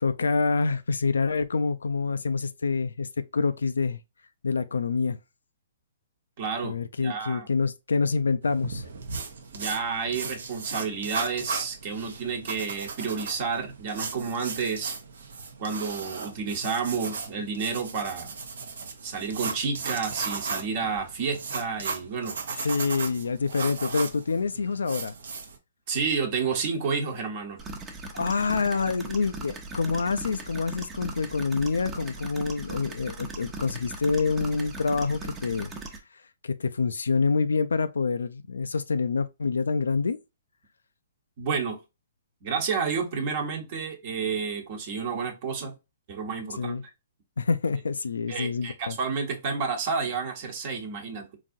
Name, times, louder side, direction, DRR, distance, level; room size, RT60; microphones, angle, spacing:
voice 1, 0.0-4.0 4.4-5.2 6.6-8.8 22.6-25.1 28.1-35.7 36.4-40.2 46.6-46.8 47.4-49.0, left 4 dB, 90° left, 0.3 m, -27 dB
voice 2, 6.4-6.8 7.0-7.5 9.5-14.9 15.6-18.3 19.0-22.7 25.9-27.6 41.4-41.8 42.4-45.7 46.1-46.8 48.3-51.4, right 5 dB, 45° right, 1.0 m, -30 dB
sound 1, 8.4-25.6, right 4 dB, 75° right, 0.8 m, -36 dB
sound 2, 27.6-36.0, right 3 dB, 20° right, 0.7 m, -39 dB
3.9 x 2.6 x 2.5 m
hypercardioid pair, 135°, 0 cm